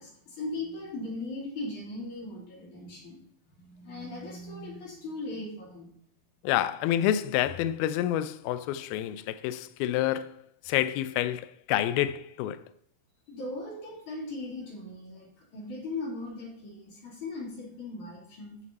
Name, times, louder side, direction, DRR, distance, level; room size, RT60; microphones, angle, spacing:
voice 1, 0.0-3.2 3.6-5.9 13.3-18.6, left 2 dB, 50° left, 4.6 m, -38 dB
voice 2, 6.4-12.6, left 12 dB, 85° left, 2.5 m, -28 dB
14.5 x 6.3 x 4.1 m
omnidirectional pair, 4.4 m